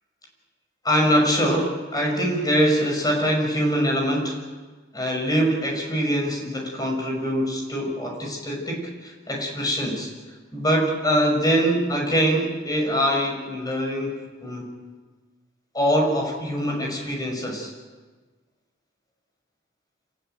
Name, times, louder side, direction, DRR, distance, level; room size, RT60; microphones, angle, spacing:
voice 1, 0.8-4.4 4.9-10.1 10.5-14.7 15.7-17.7, equal, 20° left, 1 dB, 6.2 m, -23 dB
27.0 x 18.5 x 9.3 m, 1.3 s
head